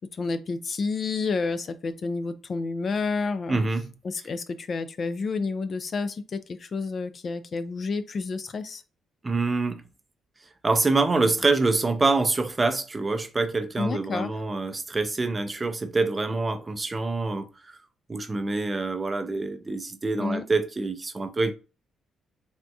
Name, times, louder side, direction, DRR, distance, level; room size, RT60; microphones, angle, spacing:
voice 1, 0.0-3.6 4.0-8.8 13.8-14.3 20.2-20.4, left 4 dB, 45° left, 0.3 m, -30 dB
voice 2, 3.5-3.9 9.2-9.8 10.6-17.8 18.1-21.5, right 3 dB, 25° right, 0.4 m, -26 dB
3.4 x 2.3 x 2.7 m
cardioid pair, 90°, 0 cm